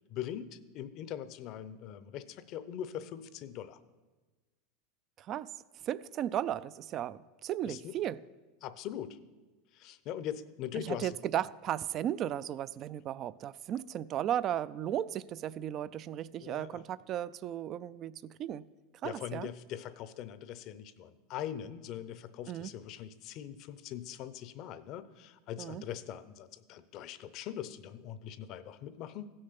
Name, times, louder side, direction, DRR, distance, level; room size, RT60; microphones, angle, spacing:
voice 1, 0.1-3.8 7.7-7.9 8.6-9.2 9.7-11.2 16.4-16.8 19.0-29.3, left 10 dB, 50° left, 0.6 m, -42 dB
voice 2, 5.2-5.5 5.8-8.2 10.9-18.6 19.0-19.5 22.5-22.7 25.6-25.8, right 11 dB, 40° right, 0.3 m, -35 dB
15.5 x 6.5 x 5.9 m
supercardioid pair, 120°, 0 cm